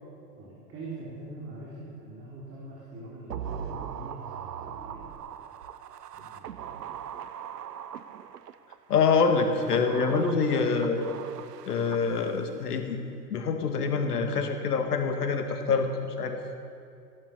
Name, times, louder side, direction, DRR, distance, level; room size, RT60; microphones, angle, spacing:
voice 1, 0.4-5.2 6.1-7.0, right 2 dB, 30° right, -5 dB, 4.0 m, -43 dB
sound 1, 3.3-8.8 9.4-12.6 12.9-13.0, right 9 dB, 80° right, 0.9 m, -40 dB
voice 2, 8.9-11.1 11.7-13.0 13.3-15.9 16.2-16.4, left 5 dB, 75° left, 6 dB, 2.0 m, -25 dB
16.5 x 12.0 x 6.8 m, 2.5 s
hypercardioid pair, 100°, 47 cm